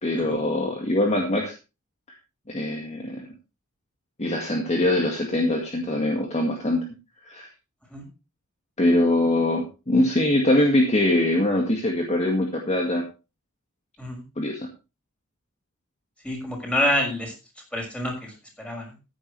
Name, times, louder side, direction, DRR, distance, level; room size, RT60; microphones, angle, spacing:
voice 1, 0.0-1.5 2.5-3.2 4.2-6.8 7.2-7.5 8.8-13.0 14.4-14.7, left 1 dB, 30° left, 1 dB, 2.0 m, -23 dB
voice 2, 16.2-17.3 17.7-19.0, left 1 dB, 5° left, 0 dB, 5.9 m, -27 dB
14.5 x 10.5 x 3.3 m, 0.29 s
head